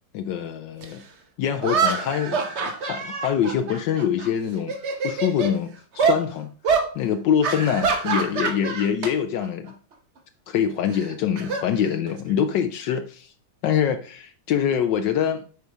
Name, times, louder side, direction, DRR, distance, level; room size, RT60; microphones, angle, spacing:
voice 1, 0.1-1.0 1.4-4.7 5.0-6.5 6.9-9.7 10.5-13.3 13.6-15.4, left 8 dB, 75° left, 1.3 m, -24 dB
sound 1, 0.8-0.9 1.6-4.3 4.6-5.5 6.0-6.2 6.6-6.9 7.4-9.1 9.4-9.7 10.9-12.3, right 5 dB, 45° right, 1.0 m, -25 dB
8.3 x 5.1 x 4.6 m
omnidirectional pair, 2.0 m